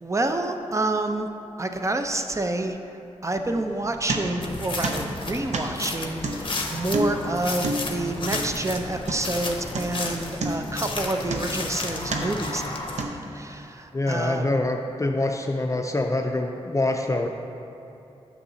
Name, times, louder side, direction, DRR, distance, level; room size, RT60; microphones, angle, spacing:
voice 1, 0.0-1.3 1.6-2.8 3.2-12.8 13.3-14.5, right 2 dB, 25° right, 6 dB, 0.6 m, -28 dB
sound 1, 3.5-4.6 4.8-9.4 9.7-10.1 10.4-11.7 12.1-12.5 13.0-13.5, right 2 dB, 80° right, 0.7 m, -31 dB
sound 2, 4.4-13.0, left 3 dB, 45° left, 0.8 m, -33 dB
voice 2, 13.9-17.3, left 2 dB, 25° left, 3 dB, 0.5 m, -25 dB
9.6 x 7.2 x 2.7 m, 2.9 s
cardioid pair, 55°, 12 cm